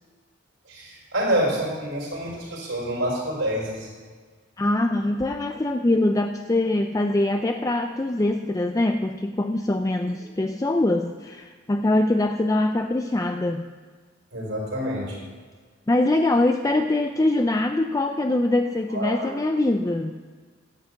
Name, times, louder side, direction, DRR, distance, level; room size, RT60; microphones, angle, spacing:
voice 1, 0.7-3.9 14.3-15.2 18.9-19.3, right 1 dB, 80° right, -4 dB, 4.4 m, -27 dB
voice 2, 4.6-13.6 15.9-20.1, left 2 dB, 15° left, 6 dB, 0.4 m, -23 dB
10.5 x 8.1 x 7.7 m, 1.6 s
head